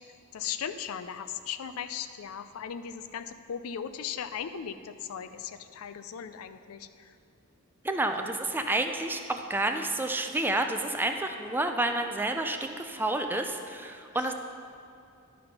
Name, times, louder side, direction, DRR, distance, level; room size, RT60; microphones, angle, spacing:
voice 1, 0.3-7.1 14.1-14.3, left 8 dB, 75° left, 11 dB, 0.4 m, -38 dB
voice 2, 7.8-14.3, right 2 dB, 10° right, 5 dB, 0.3 m, -29 dB
11.5 x 4.2 x 5.4 m, 2.4 s
head